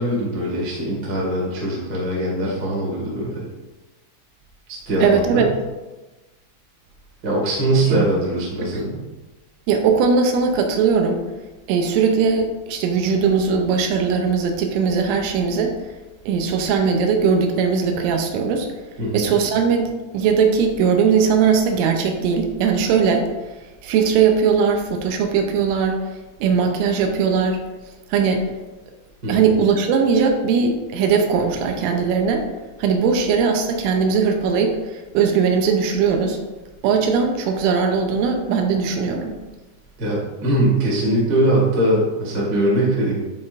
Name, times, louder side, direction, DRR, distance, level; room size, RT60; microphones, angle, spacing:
voice 1, 0.0-3.4 4.7-5.4 7.2-9.0 19.0-19.2 29.2-29.4 40.0-43.2, right 1 dB, 65° right, -5 dB, 0.9 m, -21 dB
voice 2, 5.0-5.5 7.9-8.1 8.6-8.8 9.7-11.2 11.7-15.7 16.3-18.7 19.1-23.2 23.8-26.0 26.4-27.6 28.1-28.4 29.3-32.5 32.8-36.4 36.8-39.4, right 5 dB, 85° right, 4 dB, 3.1 m, -19 dB
11.0 x 4.0 x 2.5 m, 1.1 s
omnidirectional pair, 5.5 m